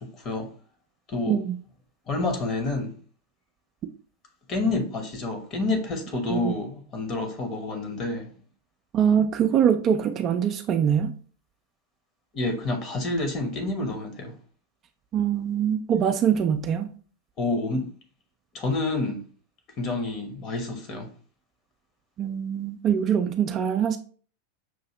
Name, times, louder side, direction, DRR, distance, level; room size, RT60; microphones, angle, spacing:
voice 1, 0.2-0.5 1.1-1.4 2.1-2.9 4.5-8.3 12.3-14.3 17.4-17.9 18.5-19.2 19.8-21.1, left 2 dB, 30° left, 1.0 m, -28 dB
voice 2, 8.9-11.1 15.1-16.9 22.2-24.0, right 8 dB, 30° right, 0.4 m, -23 dB
6.1 x 2.7 x 2.9 m
figure-of-eight pair, 90°, 0 cm